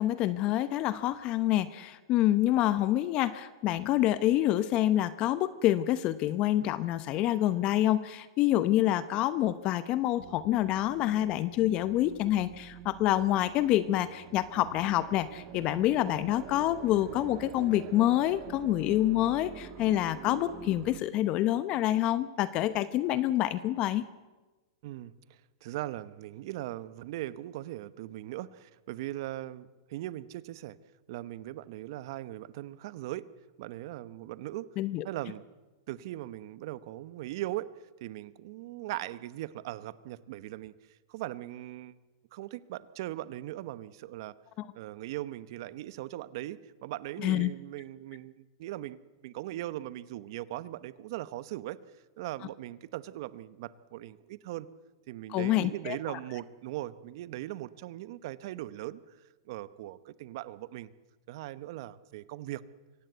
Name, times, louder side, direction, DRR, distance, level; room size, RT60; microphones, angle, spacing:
voice 1, 0.0-24.0 34.8-35.1 44.6-44.7 47.2-47.5 55.3-56.2, left 13 dB, 40° left, 14 dB, 0.9 m, -27 dB
sound 1, 10.2-21.0, right 10 dB, 40° right, 1.4 m, -47 dB
voice 2, 24.8-30.8 31.1-33.2 33.6-34.7 35.0-35.5 35.9-37.7 38.0-40.7 41.1-41.9 42.3-44.3 44.7-49.0 49.2-51.8 52.2-54.7 55.1-59.2 59.4-60.9 61.3-62.6, right 15 dB, 60° right, 16 dB, 1.0 m, -39 dB
24.0 x 17.0 x 8.1 m, 1.2 s
hypercardioid pair, 135°, 3 cm